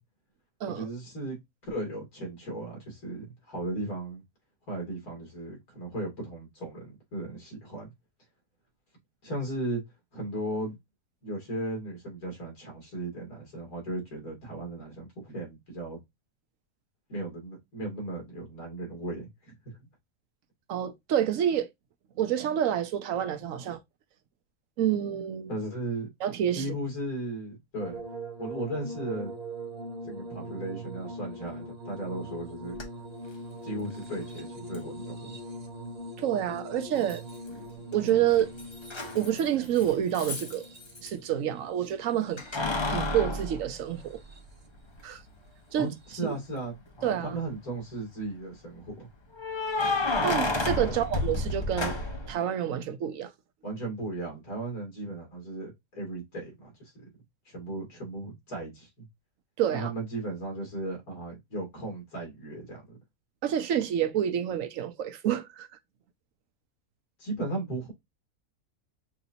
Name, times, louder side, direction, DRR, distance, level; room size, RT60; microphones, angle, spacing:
voice 1, 0.7-1.4 1.6-4.2 4.7-7.9 9.2-9.8 10.1-10.8 11.2-16.0 17.1-19.3 19.6-19.8 25.5-26.1 26.5-28.0 28.4-29.3 30.0-32.8 33.6-35.4 45.8-46.8 47.2-49.1 53.6-56.7 56.9-57.0 57.5-59.0 59.7-63.0 67.2-67.9, right 2 dB, 75° left, 3.2 m, -36 dB
voice 2, 20.7-21.7 22.2-23.8 24.8-25.5 26.2-26.7 36.2-37.2 37.9-38.5 39.1-40.7 41.0-42.4 42.9-44.2 45.0-45.2 45.7-45.9 46.2-46.4 47.0-47.4 50.2-52.0 52.3-53.3 59.6-59.9 63.4-65.7, right 10 dB, 65° right, 1.0 m, -28 dB
sound 1, 27.8-43.0 43.9-44.6 46.0-46.2, right 1 dB, 45° right, 1.1 m, -42 dB
Keys jangling, 32.8-32.9 34.7-34.8 37.1-37.6 37.9-41.1 42.4-44.5 45.0-45.1 46.9-47.4 49.4-52.3, left 2 dB, 25° left, 0.6 m, -31 dB
5.9 x 2.7 x 2.7 m
omnidirectional pair, 1.6 m